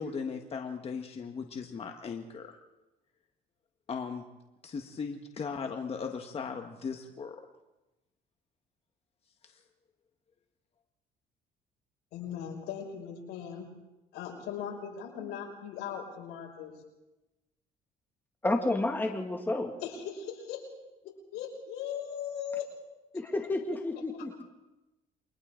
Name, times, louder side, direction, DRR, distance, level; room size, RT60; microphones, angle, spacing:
voice 1, 0.0-2.5 3.9-4.2 4.6-7.4, left 5 dB, 35° left, 4 dB, 1.4 m, -37 dB
voice 2, 12.1-13.7 14.1-16.8 19.8-20.6 21.0-22.7, left 8 dB, 90° left, 0 dB, 6.0 m, -39 dB
voice 3, 18.4-19.7 23.1-24.4, left 2 dB, 10° left, 3 dB, 2.2 m, -30 dB
29.0 x 23.5 x 3.8 m, 1.0 s
cardioid pair, 110°, 17 cm